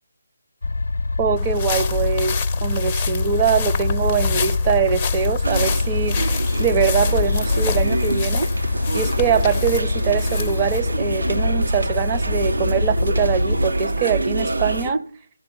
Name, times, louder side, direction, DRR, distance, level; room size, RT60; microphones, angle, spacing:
sound 1, 0.6-13.7, left 3 dB, 65° left, 0.6 m, -24 dB
voice 1, 1.2-6.2 6.6-8.5 8.9-15.1, right 7 dB, 20° right, 0.8 m, -23 dB
sound 2, 1.4-10.8, left 6 dB, 20° left, 0.6 m, -28 dB
sound 3, 5.4-14.9, right 2 dB, 75° right, 1.1 m, -26 dB
17.0 x 16.5 x 4.0 m
figure-of-eight pair, 150°, 0 cm